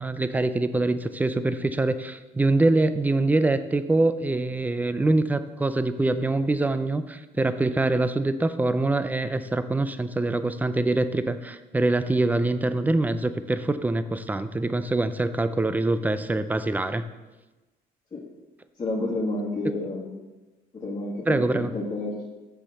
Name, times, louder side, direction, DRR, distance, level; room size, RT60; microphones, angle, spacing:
voice 1, 0.0-17.0 21.3-21.7, right 2 dB, 10° right, 12 dB, 0.5 m, -24 dB
voice 2, 18.8-20.1 20.7-22.2, left 2 dB, 25° left, -7 dB, 1.9 m, -30 dB
7.1 x 5.8 x 6.7 m, 1.1 s
cardioid pair, 110°, 17 cm